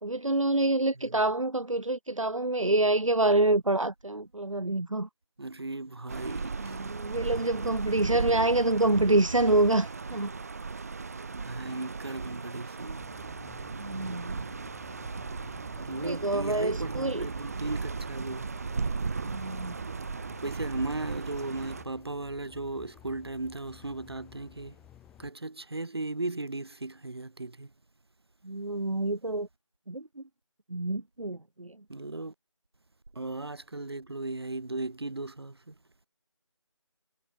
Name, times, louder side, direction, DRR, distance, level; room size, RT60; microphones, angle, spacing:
voice 1, 0.0-5.1 6.6-10.3 13.7-14.4 15.9-17.3 19.2-19.8 28.4-29.5 29.9-30.2 30.7-31.7, right 2 dB, 90° right, 1.1 m, -27 dB
voice 2, 5.4-6.8 11.3-13.0 15.8-18.4 20.4-24.8 25.2-27.7 31.9-32.3 33.1-35.7, right 2 dB, 55° right, 4.4 m, -36 dB
sound 1, 6.1-21.8, right 4 dB, 30° right, 3.8 m, -36 dB
sound 2, 13.0-25.3, left 12 dB, 5° left, 3.8 m, -55 dB
figure-of-eight pair, 165°, 16 cm